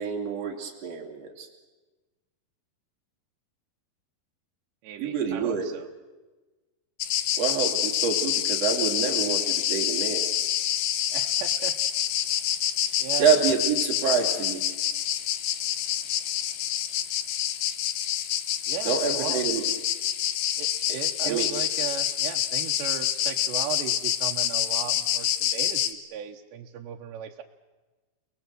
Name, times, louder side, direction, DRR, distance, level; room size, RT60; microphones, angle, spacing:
voice 1, 0.0-1.5 5.0-5.7 7.4-10.3 13.2-14.6 18.8-19.6 20.9-21.5, right 6 dB, 40° right, 0 dB, 3.9 m, -27 dB
voice 2, 4.8-5.9 11.1-11.8 13.0-13.3 18.7-19.4 20.6-27.4, right 10 dB, 80° right, 1 dB, 3.2 m, -37 dB
sound 1, 7.0-25.9, left 11 dB, 70° left, 2.6 m, -27 dB
30.0 x 20.0 x 7.8 m, 1.2 s
omnidirectional pair, 5.0 m